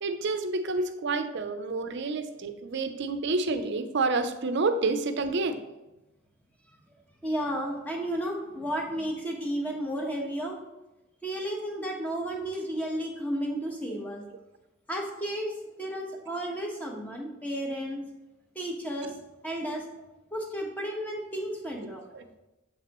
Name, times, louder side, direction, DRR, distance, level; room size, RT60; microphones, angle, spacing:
voice 1, 0.0-5.6 13.9-14.0 21.8-22.3, right 3 dB, 60° right, 8 dB, 0.6 m, -29 dB
voice 2, 7.2-10.6 11.2-14.2 14.9-15.5 15.8-18.0 18.5-19.1 19.4-19.8 20.3-22.0, equal, 10° left, -1 dB, 1.2 m, -32 dB
7.4 x 5.9 x 3.0 m, 1.0 s
head